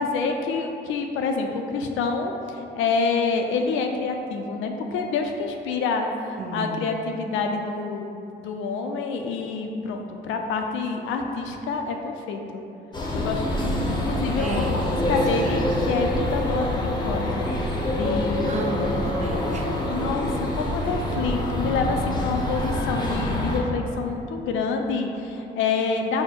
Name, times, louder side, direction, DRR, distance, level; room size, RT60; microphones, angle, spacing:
voice 1, 0.0-12.6 13.1-18.6 19.9-26.2, left 4 dB, 85° left, 3 dB, 0.4 m, -27 dB
voice 2, 6.4-6.9 14.4-15.8 18.4-19.7, right 2 dB, 35° right, 1 dB, 0.5 m, -32 dB
sound 1, 12.9-23.6, left 1 dB, 20° left, 0.7 m, -26 dB
4.2 x 2.1 x 4.5 m, 2.8 s
cardioid pair, 90°, 20 cm